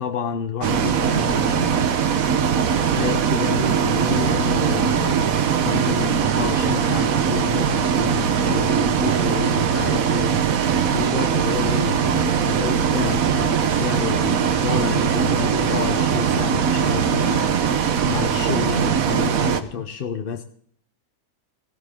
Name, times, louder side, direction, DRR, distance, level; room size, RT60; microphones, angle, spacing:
voice 1, 0.0-1.9 2.9-20.4, left 7 dB, 50° left, 0.7 m, -29 dB
Bus, 0.6-19.6, right 7 dB, 60° right, 1.3 m, -21 dB
16.5 x 13.0 x 3.6 m
omnidirectional pair, 1.8 m